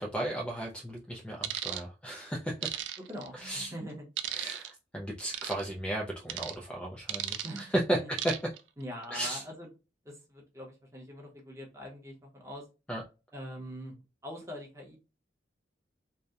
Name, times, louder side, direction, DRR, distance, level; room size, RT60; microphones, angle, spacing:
voice 1, 0.0-2.7 3.4-3.7 4.3-8.3 9.1-9.4 12.9-13.0, right 1 dB, 5° left, -1 dB, 0.3 m, -34 dB
sound 1, 1.4-1.8 2.6-3.3 4.2-4.7 5.3-5.6 6.3-6.5 7.1-7.6 8.2-8.6 9.0-9.2, right 12 dB, 80° right, 0.3 m, -35 dB
voice 2, 3.0-4.1 7.4-8.1 8.8-9.7 10.0-12.6 13.3-13.9 14.2-15.0, equal, 15° right, 0 dB, 0.7 m, -43 dB
2.7 x 2.0 x 2.2 m, 0.29 s
head